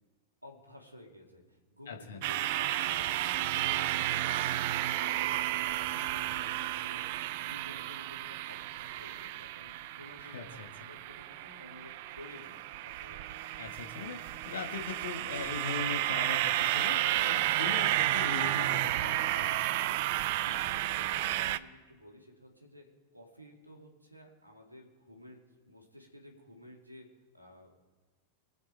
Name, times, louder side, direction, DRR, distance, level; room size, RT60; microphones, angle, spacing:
voice 1, 0.4-7.1 7.4-13.4 20.4-27.8, left 1 dB, 85° right, 1 dB, 2.4 m, -53 dB
voice 2, 1.9-2.2 10.2-10.7 13.6-19.5, left 6 dB, 65° left, 4 dB, 1.6 m, -40 dB
sound 1, 2.2-21.6, right 15 dB, 50° right, 0.5 m, -32 dB
23.0 x 7.8 x 4.4 m, 1.3 s
figure-of-eight pair, 90°, 0 cm